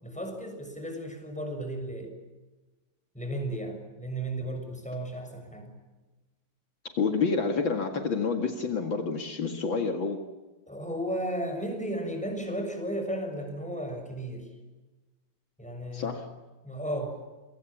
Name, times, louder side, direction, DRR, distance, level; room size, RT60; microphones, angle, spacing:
voice 1, 0.0-2.1 3.1-5.8 10.7-14.5 15.6-16.2 16.6-17.2, right 1 dB, 5° left, 4 dB, 6.6 m, -34 dB
voice 2, 7.0-10.2 15.9-16.3, left 5 dB, 65° left, 5 dB, 2.8 m, -28 dB
27.5 x 24.5 x 7.3 m, 1.2 s
omnidirectional pair, 2.3 m